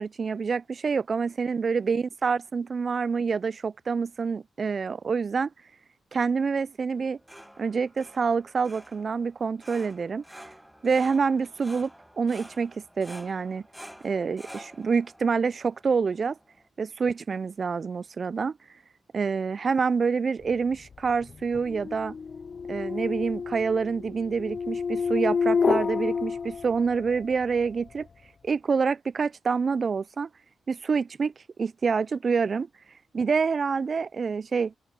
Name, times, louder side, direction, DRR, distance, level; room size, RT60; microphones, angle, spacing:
voice 1, 0.0-5.5 6.1-7.2 7.6-10.2 10.8-11.9 12.2-13.6 14.0-16.4 16.8-18.6 19.1-22.1 22.7-28.1 28.4-30.3 30.7-31.3 31.6-32.7 33.1-34.7, right 5 dB, 55° right, 0.3 m, -27 dB
sound 1, 6.9-16.7, equal, 5° right, 1.1 m, -49 dB
sound 2, 20.7-27.2, left 5 dB, 50° left, 0.5 m, -29 dB
open air
cardioid pair, 60°, 0 cm